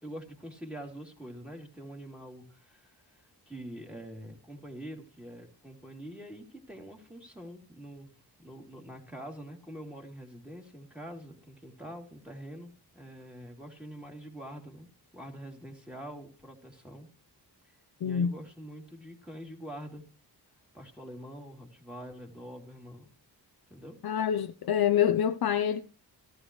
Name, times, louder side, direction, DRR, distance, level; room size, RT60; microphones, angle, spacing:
voice 1, 0.0-8.1 8.4-14.9 15.1-17.1 18.0-20.0 20.7-23.1 23.7-24.0, equal, ahead, 2.9 m, -45 dB
voice 2, 18.0-18.3 24.0-25.8, left 9 dB, 60° left, 0.7 m, -26 dB
13.5 x 13.0 x 3.2 m
cardioid pair, 80°, 42 cm